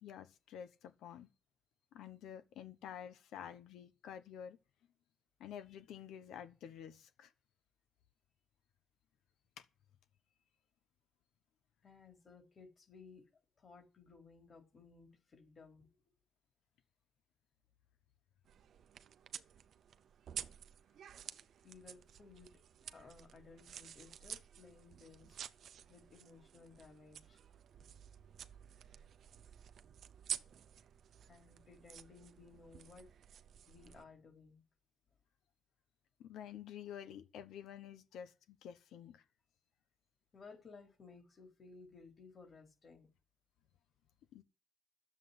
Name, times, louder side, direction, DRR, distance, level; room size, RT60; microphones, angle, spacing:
voice 1, 0.0-1.3 1.9-4.6 5.4-7.3 9.6-9.7 36.2-39.2 44.3-44.4, left 9 dB, 80° left, 1.1 m, -50 dB
voice 2, 11.8-13.2 13.6-15.9 21.6-22.6 22.9-25.4 25.9-27.4 31.3-33.1 33.7-34.6 40.3-43.1, left 4 dB, 40° left, 3.7 m, -58 dB
sound 1, 18.4-34.0, right 9 dB, 65° right, 0.6 m, -51 dB
10.5 x 7.5 x 9.7 m
cardioid pair, 90°, 0 cm